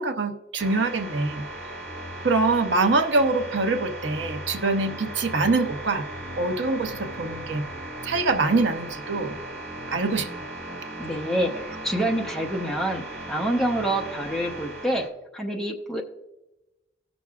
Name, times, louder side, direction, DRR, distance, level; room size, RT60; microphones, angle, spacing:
voice 1, 0.0-1.4 2.2-6.1 6.4-7.6 8.0-9.3 9.9-10.3, right 3 dB, 75° right, 6 dB, 0.8 m, -24 dB
sound 1, 0.6-15.1, right 1 dB, 55° right, 2.5 m, -37 dB
voice 2, 11.0-15.0 15.3-16.0, right 1 dB, ahead, 0 dB, 0.8 m, -27 dB
18.0 x 6.1 x 2.4 m, 0.99 s
head